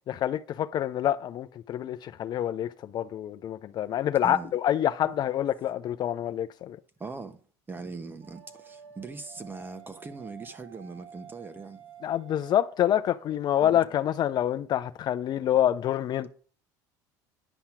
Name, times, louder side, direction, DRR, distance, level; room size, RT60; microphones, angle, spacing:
voice 1, 0.1-6.8 12.0-16.3, left 11 dB, 50° left, 0.6 m, -27 dB
voice 2, 7.0-7.4 7.7-11.8 13.6-13.8, right 4 dB, 20° right, 1.2 m, -40 dB
sound 1, 8.2-13.6, right 6 dB, 80° right, 2.3 m, -51 dB
10.0 x 5.6 x 6.0 m
supercardioid pair, 95°, 10 cm